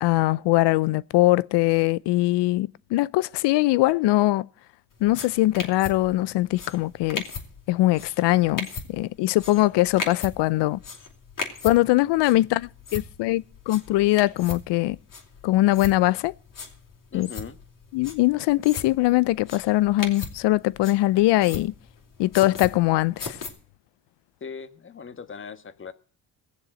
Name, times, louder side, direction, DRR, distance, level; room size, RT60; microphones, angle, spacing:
voice 1, 0.0-4.5 5.0-7.2 7.7-10.8 11.6-15.0 15.4-16.3 17.1-17.3 17.9-21.7 22.2-23.4, left 17 dB, 80° left, 0.6 m, -22 dB
sound 1, 4.9-23.5, left 5 dB, 50° left, 3.9 m, -39 dB
voice 2, 17.1-17.6 24.4-25.9, left 6 dB, 30° left, 1.3 m, -39 dB
18.0 x 7.2 x 7.7 m
cardioid pair, 95°, 41 cm